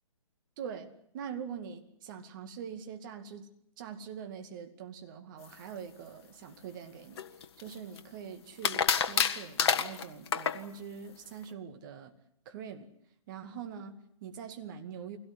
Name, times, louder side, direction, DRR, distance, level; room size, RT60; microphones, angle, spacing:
voice 1, 0.6-3.5 3.8-7.2 7.6-12.1 12.5-12.9 13.3-15.2, right 7 dB, 35° right, 2.2 m, -43 dB
sound 1, 7.2-8.0 8.6-10.6, left 7 dB, 50° left, 1.4 m, -28 dB
23.0 x 17.5 x 9.8 m
figure-of-eight pair, 135°, 18 cm